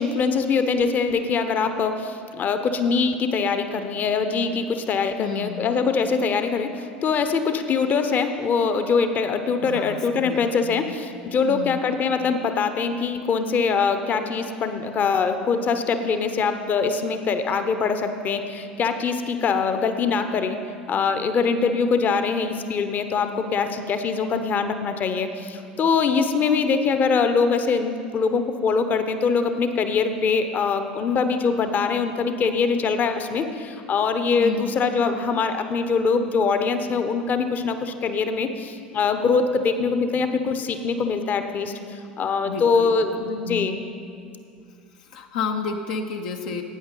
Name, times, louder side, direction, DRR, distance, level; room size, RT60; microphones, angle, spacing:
voice 1, 0.0-20.6 20.9-43.8, left 5 dB, 35° left, 8 dB, 0.9 m, -23 dB
voice 2, 5.1-5.7 9.6-10.9 11.5-11.8 34.4-34.9 42.4-43.7 45.0-46.6, left 5 dB, 60° left, 4 dB, 0.8 m, -32 dB
18.5 x 9.4 x 3.9 m, 2.4 s
figure-of-eight pair, 75°, 5 cm